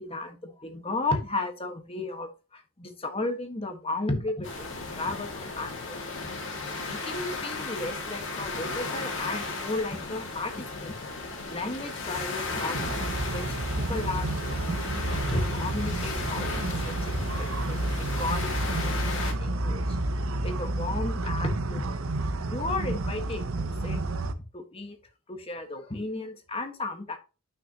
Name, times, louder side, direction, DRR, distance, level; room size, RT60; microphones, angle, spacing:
voice 1, 0.0-6.1 6.8-10.9 11.5-14.6 14.8-20.0 20.4-22.0 22.4-24.0 24.5-25.0 25.3-27.2, left 2 dB, 25° left, 5 dB, 1.4 m, -34 dB
sound 1, 4.4-19.3, left 3 dB, 60° left, 2.2 m, -35 dB
sound 2, 12.7-24.3, right 2 dB, 75° right, 0.8 m, -30 dB
9.4 x 6.2 x 2.9 m, 0.31 s
head